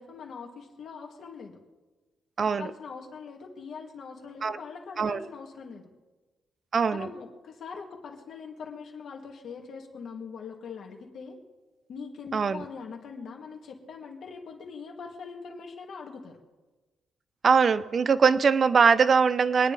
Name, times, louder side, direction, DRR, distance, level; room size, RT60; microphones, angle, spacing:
voice 1, 0.0-1.6 2.4-5.9 6.9-11.4 11.9-16.4, left 5 dB, 55° left, 1 dB, 2.2 m, -42 dB
voice 2, 2.4-2.7 4.4-4.6 5.0-5.2 6.7-7.1 12.3-12.6 17.4-19.7, right 5 dB, 35° right, 14 dB, 0.5 m, -22 dB
25.5 x 10.0 x 3.4 m, 1.2 s
cardioid pair, 145°, 0 cm